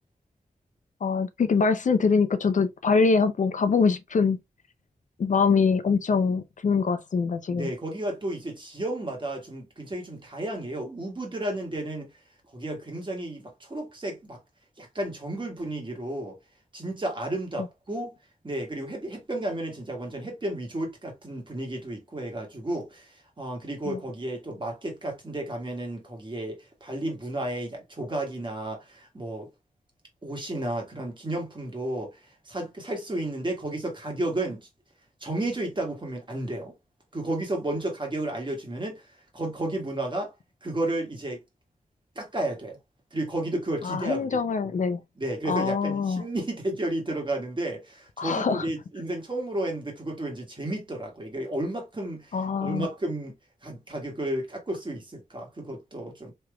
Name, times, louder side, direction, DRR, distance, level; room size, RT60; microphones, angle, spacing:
voice 1, 1.0-4.4 5.2-7.7 23.9-24.0 43.8-45.0 45.5-46.2 48.2-48.7 52.3-52.9, left 5 dB, 60° left, 0.4 m, -24 dB
voice 2, 7.5-12.1 12.5-14.4 14.8-16.4 16.7-18.2 18.4-29.5 30.2-34.7 35.2-36.7 37.1-40.3 40.6-41.4 42.1-42.8 43.1-44.7 45.2-53.3 53.6-56.3, right 1 dB, 35° right, 1.5 m, -32 dB
3.3 x 3.0 x 2.2 m
wide cardioid pair, 70°, 15 cm